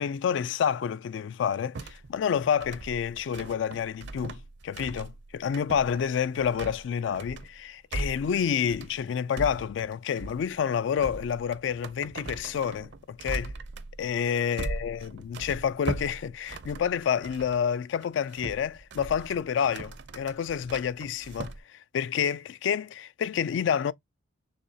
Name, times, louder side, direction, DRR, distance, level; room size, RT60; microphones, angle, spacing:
voice 1, 0.0-13.5 14.0-23.9, left 8 dB, 70° left, 0.3 m, -29 dB
sound 1, 1.7-17.6 18.0-21.6, right 3 dB, 60° right, 0.5 m, -40 dB
6.6 x 2.7 x 2.7 m
head